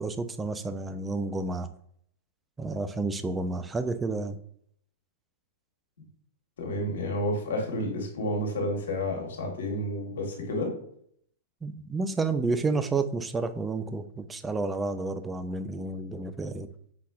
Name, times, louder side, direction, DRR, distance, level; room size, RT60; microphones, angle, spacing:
voice 1, 0.0-1.7 2.6-4.4 11.6-16.7, right 3 dB, 15° right, 10 dB, 0.4 m, -30 dB
voice 2, 6.6-10.7, left 1 dB, 75° left, 1 dB, 1.3 m, -30 dB
4.2 x 3.9 x 2.4 m, 0.66 s
hypercardioid pair, 110°, 0 cm